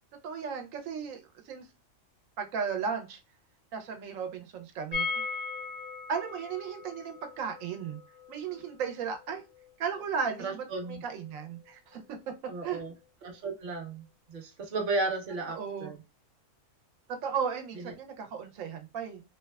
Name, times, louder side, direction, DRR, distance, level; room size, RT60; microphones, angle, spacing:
voice 1, 0.2-1.7 2.4-3.2 3.7-5.3 6.1-8.0 8.3-9.4 9.8-12.2 12.6-12.8 15.5-16.0 17.2-19.2, right 6 dB, 90° right, 5 dB, 1.0 m, -35 dB
sound 1, 4.9-10.7 10.9-11.0 11.3-11.4, left 5 dB, 45° left, 0.5 m, -39 dB
voice 2, 10.4-11.0 12.5-12.9 13.2-14.0 14.3-16.0, right 3 dB, 45° right, 2 dB, 0.7 m, -34 dB
2.9 x 2.1 x 2.2 m, 0.28 s
omnidirectional pair, 1.3 m